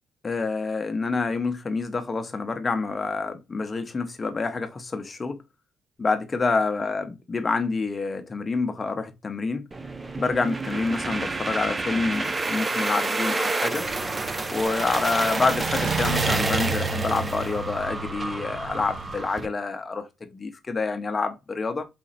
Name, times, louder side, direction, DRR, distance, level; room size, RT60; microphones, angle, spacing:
voice 1, 0.2-5.4 6.0-9.7 10.2-13.8 14.5-21.9, left 4 dB, 30° left, 0.8 m, -27 dB
sound 1, 9.7-19.5, right 3 dB, 25° right, 0.5 m, -29 dB
sound 2, 13.8-19.2, right 5 dB, 75° right, 0.6 m, -33 dB
5.0 x 2.7 x 2.5 m
cardioid pair, 90°, 0 cm